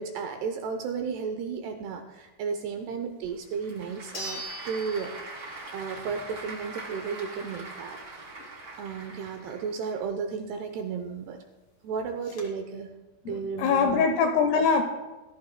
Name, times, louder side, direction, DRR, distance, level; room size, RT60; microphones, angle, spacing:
voice 1, 0.0-5.2 5.7-8.0 8.7-11.4 11.8-12.9 13.2-14.0, right 5 dB, 80° right, 5 dB, 2.5 m, -33 dB
Applause / Crowd, 3.2-10.0, right 2 dB, 30° right, 3.1 m, -43 dB
sound 1, 3.3-3.4 4.1-5.9 6.3-6.4 11.0-11.1 11.3-11.4 12.0-12.4, equal, 40° left, 2.0 m, -41 dB
voice 2, 13.3-14.8, left 5 dB, 80° left, 6 dB, 2.4 m, -23 dB
20.5 x 14.0 x 2.2 m, 1.2 s
omnidirectional pair, 5.4 m